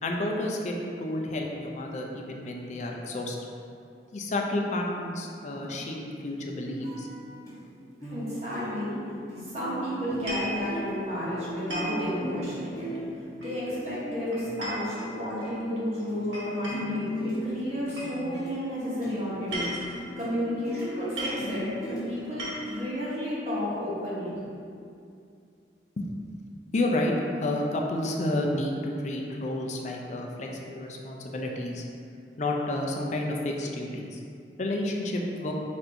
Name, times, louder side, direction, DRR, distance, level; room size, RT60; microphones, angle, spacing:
voice 1, 0.0-3.4 4.1-7.1 26.0-26.1 26.7-27.1 27.4-31.8 32.4-34.2 34.6-35.5, left 1 dB, 40° left, 0 dB, 0.4 m, -30 dB
sound 1, 5.5-7.6 8.0-8.3 8.5-16.1 16.4-22.5, equal, 20° left, 1.3 m, -38 dB
voice 2, 8.1-9.0 9.4-12.9 13.4-24.4, equal, 40° right, -8 dB, 1.0 m, -32 dB
sound 2, 10.1-10.6 11.7-12.0 13.4-13.8 14.3-15.5 16.3-17.0 18.0-18.1 19.3-20.0 20.8-20.9 21.2-21.5 22.2-22.8, right 1 dB, 85° right, 1.3 m, -36 dB
4.2 x 2.6 x 4.4 m, 2.5 s
head